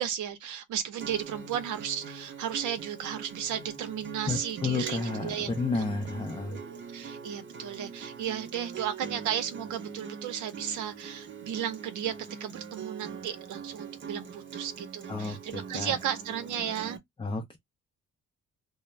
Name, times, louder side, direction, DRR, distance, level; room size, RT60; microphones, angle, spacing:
voice 1, 0.0-5.5 5.7-5.9 6.4-12.1 12.4-17.0, right 9 dB, 80° right, 0.7 m, -34 dB
Acoustic guitar, 1.0-17.0, right 6 dB, 40° right, 0.7 m, -42 dB
voice 2, 4.3-6.6 15.1-16.0 17.2-17.6, left 3 dB, 15° left, 0.5 m, -32 dB
2.3 x 2.1 x 3.1 m
cardioid pair, 90°, 30 cm